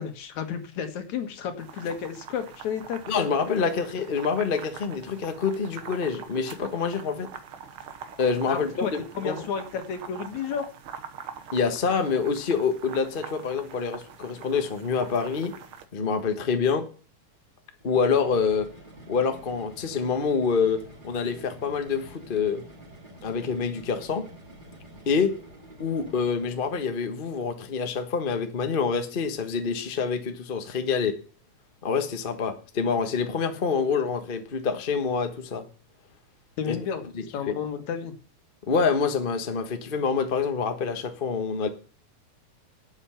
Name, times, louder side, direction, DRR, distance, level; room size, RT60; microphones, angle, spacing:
voice 1, 0.0-3.3 8.5-10.6 36.6-37.0 37.3-38.1, left 7 dB, 75° left, 7 dB, 2.9 m, -32 dB
Boiling Pot of Water, 1.6-15.8, right 7 dB, 60° right, 1.6 m, -44 dB
voice 2, 3.1-7.3 8.2-9.5 11.5-15.5 15.9-16.9 17.8-18.7 19.1-22.6 23.2-24.2 25.1-25.3 25.8-31.1 31.8-35.6 36.7-36.8 37.1-37.5 38.7-41.7, left 5 dB, 45° left, 7 dB, 0.6 m, -26 dB
sound 1, 17.8-26.9, right 1 dB, 15° right, 3.2 m, -48 dB
11.5 x 8.2 x 5.7 m, 0.38 s
omnidirectional pair, 3.3 m